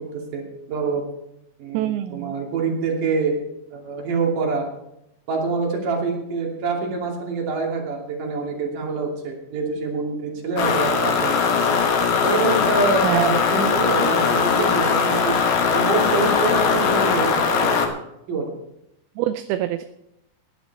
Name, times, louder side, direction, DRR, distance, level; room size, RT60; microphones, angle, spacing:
voice 1, 0.1-1.0 1.6-3.4 3.7-4.7 5.3-11.6 12.2-15.3 15.7-18.0 18.3-18.6, right 4 dB, 60° right, 0 dB, 4.2 m, -26 dB
voice 2, 1.7-2.3 13.0-13.3 19.2-19.8, right 13 dB, 85° right, 9 dB, 2.5 m, -25 dB
sound 1, 10.6-17.9, left 5 dB, 65° left, 2.9 m, -20 dB
18.5 x 10.5 x 4.2 m, 0.82 s
omnidirectional pair, 4.4 m